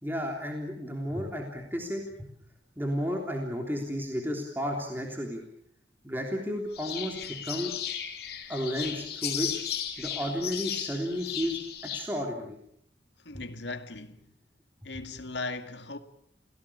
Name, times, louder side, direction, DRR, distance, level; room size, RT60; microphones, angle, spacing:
voice 1, 0.0-2.0 2.8-5.4 6.0-7.7 8.5-9.5 10.0-11.6 11.9-12.6, equal, 10° right, 3.4 m, -32 dB
sound 1, 6.7-12.1, left 9 dB, 55° left, 3.3 m, -35 dB
voice 2, 13.2-14.3 14.8-16.0, left 3 dB, 70° left, 2.1 m, -38 dB
29.5 x 17.5 x 8.7 m
head